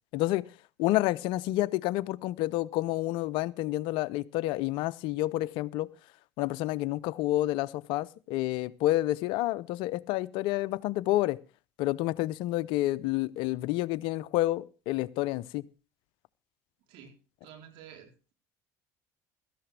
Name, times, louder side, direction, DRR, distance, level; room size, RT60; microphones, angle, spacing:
voice 1, 0.1-0.5 0.8-5.9 6.4-11.4 11.8-15.6, left 16 dB, 70° left, 0.6 m, -29 dB
voice 2, 16.9-18.3, right 8 dB, 70° right, 3.9 m, -51 dB
17.0 x 13.5 x 3.3 m
hypercardioid pair, 75°, 9 cm